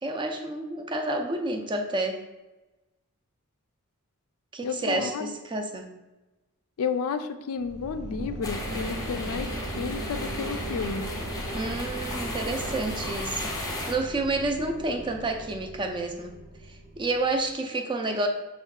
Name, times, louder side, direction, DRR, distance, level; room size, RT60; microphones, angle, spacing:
voice 1, 0.0-2.2 4.5-5.9 11.5-16.3 16.7-18.3, right 2 dB, 20° right, 4 dB, 0.4 m, -29 dB
voice 2, 4.6-5.3 6.8-11.1, left 5 dB, 70° left, 9 dB, 0.4 m, -32 dB
sound 1, 7.6-17.5, right 1 dB, 75° right, 0.8 m, -38 dB
sound 2, 8.4-13.9, left 1 dB, 15° left, 0.7 m, -35 dB
6.2 x 2.3 x 3.6 m, 1.1 s
head